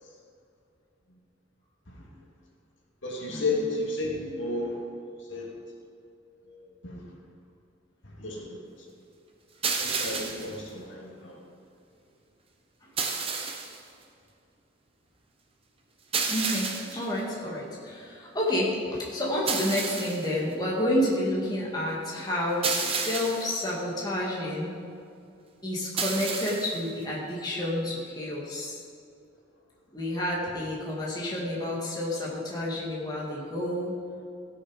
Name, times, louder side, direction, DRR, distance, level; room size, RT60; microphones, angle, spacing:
voice 1, 3.0-4.8 5.2-5.5 6.4-7.1 8.0-8.6 9.8-11.4, left 2 dB, 85° left, -2 dB, 2.2 m, -33 dB
sound 1, 9.6-10.6 13.0-13.8 16.1-17.1 19.5-20.3 22.6-23.6 26.0-26.8, right 5 dB, 30° right, 1.0 m, -30 dB
voice 2, 16.3-24.8 25.6-28.8 29.9-33.9, left 1 dB, 20° left, -5 dB, 2.1 m, -30 dB
15.5 x 6.7 x 5.2 m, 2.5 s
head